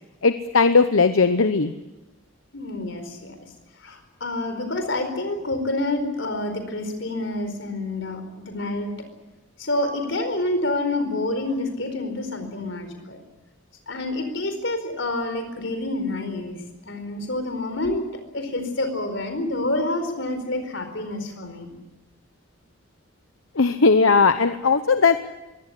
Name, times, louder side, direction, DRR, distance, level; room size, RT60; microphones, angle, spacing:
voice 1, 0.2-1.7 23.5-25.2, left 4 dB, 80° left, 10 dB, 0.9 m, -18 dB
voice 2, 2.5-3.4 3.8-8.9 9.6-13.2 13.9-18.0 18.3-21.7, left 2 dB, 60° left, 7 dB, 4.7 m, -28 dB
22.5 x 17.5 x 9.8 m, 1.1 s
head